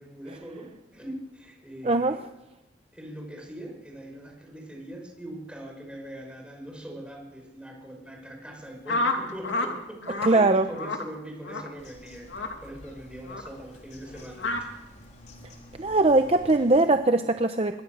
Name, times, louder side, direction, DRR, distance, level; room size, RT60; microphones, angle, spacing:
voice 1, 0.0-2.2 2.9-14.7, right 1 dB, 5° right, 1 dB, 5.8 m, -42 dB
voice 2, 1.8-2.2 10.3-10.7 15.8-17.8, right 2 dB, 30° right, 8 dB, 0.8 m, -21 dB
sound 1, 8.9-9.7 10.0-10.3 10.8-11.1 11.4-11.7 12.3-12.5 13.3-13.5 14.4-14.6, left 2 dB, 75° left, 2.8 m, -29 dB
Bird vocalization bird call bird song, 11.8-16.8, left 1 dB, 40° left, 3.9 m, -50 dB
25.5 x 21.0 x 6.6 m, 0.98 s
head